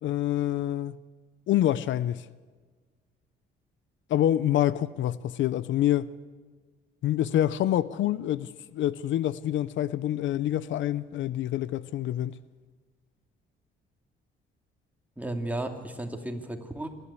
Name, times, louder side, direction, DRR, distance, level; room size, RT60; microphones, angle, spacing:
voice 1, 0.0-0.9 1.5-2.3 4.1-6.1 7.0-12.4, left 12 dB, 75° left, 0.6 m, -26 dB
voice 2, 15.2-16.9, right 1 dB, 5° right, 2.6 m, -34 dB
27.0 x 11.5 x 8.4 m
cardioid pair, 90°, 20 cm